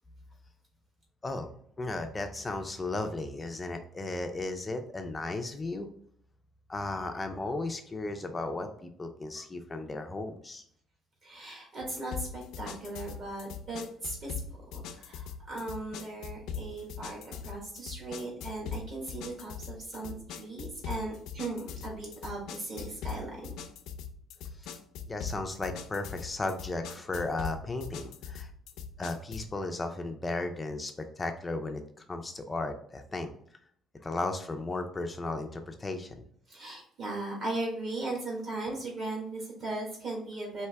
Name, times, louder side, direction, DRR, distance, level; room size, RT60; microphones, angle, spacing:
voice 1, 1.2-5.9 6.7-10.6 24.6-24.8 25.1-28.5 29.0-31.8 32.1-33.3 34.0-36.3, left 2 dB, 15° left, 6 dB, 0.4 m, -35 dB
voice 2, 11.2-23.5 36.5-40.7, right 2 dB, 45° right, -2 dB, 1.4 m, -38 dB
sound 1, 12.1-29.6, left 6 dB, 85° left, 0.5 m, -41 dB
4.6 x 2.8 x 3.3 m, 0.64 s
cardioid pair, 165°, 0 cm